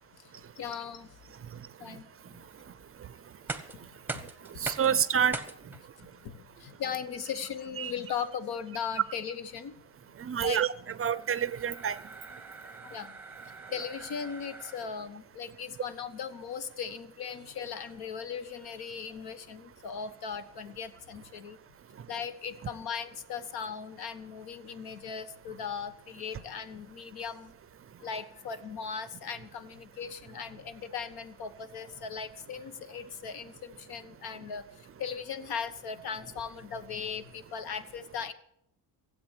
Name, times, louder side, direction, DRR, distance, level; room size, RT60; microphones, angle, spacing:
voice 1, 0.1-2.5 3.5-4.2 4.9-5.0 6.0-9.7 10.4-10.6 12.4-12.5 12.8-13.2 13.7-21.6 22.1-27.5 28.0-38.3, left 7 dB, 70° left, 1.3 m, -38 dB
sound 1, 3.3-15.2, right 3 dB, 5° right, 1.0 m, -44 dB
voice 2, 4.6-5.4 7.8-7.9 10.2-10.7 11.0-12.0, right 8 dB, 35° right, 0.5 m, -27 dB
16.5 x 8.1 x 8.2 m
cardioid pair, 165°, 38 cm